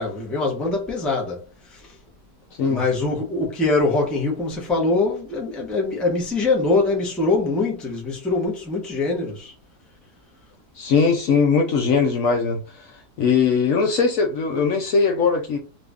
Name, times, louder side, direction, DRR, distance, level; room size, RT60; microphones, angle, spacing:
voice 1, 0.0-1.4 1.7-1.9 2.6-9.5, left 3 dB, ahead, 0.6 m, -23 dB
voice 2, 10.8-12.6 13.2-15.6, left 5 dB, 65° left, 0.9 m, -20 dB
3.0 x 2.6 x 3.4 m
omnidirectional pair, 1.7 m